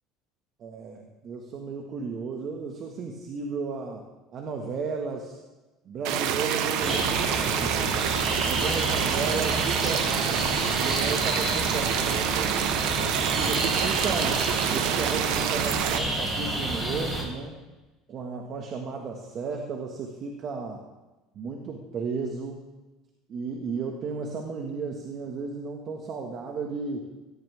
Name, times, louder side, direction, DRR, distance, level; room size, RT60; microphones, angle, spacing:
voice 1, 0.6-4.0 4.3-5.4 5.9-8.0 8.4-12.6 13.2-14.4 14.7-17.5 18.1-20.8 21.4-22.6 23.3-27.0, right 5 dB, 45° right, 1 dB, 1.9 m, -34 dB
sound 1, 6.0-16.0, right 9 dB, 70° right, 1.2 m, -27 dB
sound 2, 6.8-17.2, right 1 dB, 15° right, 5.3 m, -30 dB
17.5 x 15.0 x 3.7 m, 1.1 s
supercardioid pair, 115°, 0 cm